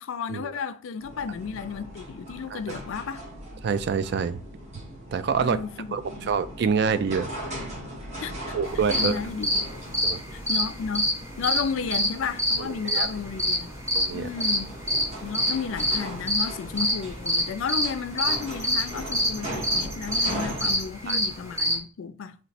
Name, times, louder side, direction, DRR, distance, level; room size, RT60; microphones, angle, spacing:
voice 1, 0.0-3.2 5.4-5.9 6.1-6.3 8.2-8.5 8.9-9.7 10.3-11.1 11.4-13.7 14.1-14.8 15.2-22.3, left 6 dB, 75° left, 0.4 m, -33 dB
sound 1, 1.0-20.8, equal, 35° right, 1.1 m, -39 dB
voice 2, 3.6-4.4 5.1-5.6 5.9-7.3 8.5-9.2 10.0-10.2 12.6-13.1 13.9-14.3 19.4-19.5 21.1-21.2, right 6 dB, 55° right, 0.3 m, -26 dB
sound 2, 8.7-21.8, equal, 15° right, 0.9 m, -26 dB
3.0 x 3.0 x 4.2 m
head